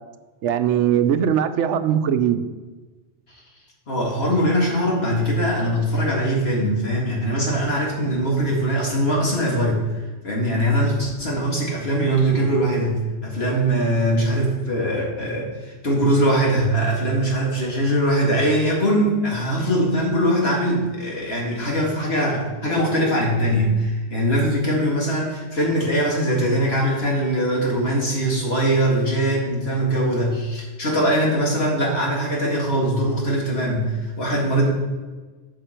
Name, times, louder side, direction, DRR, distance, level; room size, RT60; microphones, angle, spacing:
voice 1, 0.4-2.4, right 9 dB, 80° right, 10 dB, 0.9 m, -20 dB
voice 2, 3.9-34.7, right 1 dB, 60° left, -3 dB, 2.4 m, -21 dB
11.5 x 6.0 x 4.4 m, 1.3 s
omnidirectional pair, 1.2 m